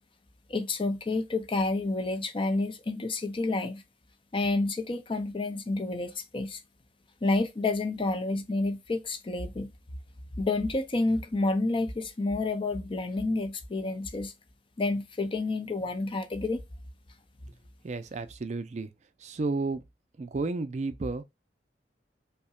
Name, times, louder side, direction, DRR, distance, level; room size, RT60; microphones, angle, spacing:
voice 1, 0.5-3.8 4.3-6.6 7.2-9.7 10.4-14.3 14.8-16.6, left 2 dB, 30° left, 0.5 m, -29 dB
voice 2, 17.8-18.9 19.2-19.8 20.2-21.2, right 3 dB, 40° right, 0.4 m, -32 dB
5.4 x 2.1 x 2.3 m
head